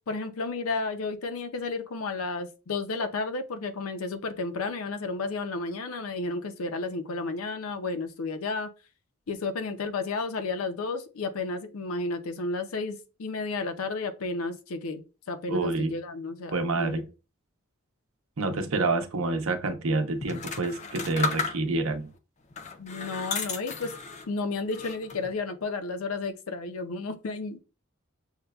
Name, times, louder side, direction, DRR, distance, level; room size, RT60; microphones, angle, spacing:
voice 1, 0.1-8.7 9.3-15.0 15.3-17.0 22.8-23.9 24.3-27.6, left 3 dB, 80° left, 0.6 m, -32 dB
voice 2, 15.5-15.9 16.5-17.0 18.4-22.1, right 3 dB, 75° right, 0.7 m, -28 dB
sound 1, 20.2-21.9 22.5-24.3 24.7-25.3, left 5 dB, 35° left, 0.4 m, -34 dB
6.3 x 2.2 x 2.3 m
head